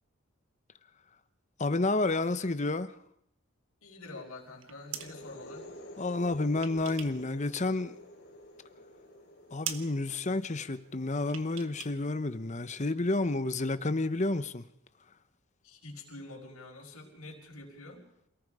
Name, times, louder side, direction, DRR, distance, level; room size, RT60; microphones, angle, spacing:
voice 1, 1.6-2.9 6.0-8.0 9.5-14.6, left 2 dB, 35° left, 1.0 m, -30 dB
voice 2, 3.8-5.7 15.6-18.0, left 2 dB, 90° left, 5.7 m, -47 dB
sound 1, 4.4-5.2 6.2-7.3 7.6-8.5 8.8-8.9 9.2-9.4 9.6-9.9 11.2-12.0 12.2-12.3, right 9 dB, 65° right, 1.6 m, -42 dB
sound 2, 4.8-12.3, left 1 dB, 50° left, 4.6 m, -51 dB
28.0 x 18.5 x 4.9 m
head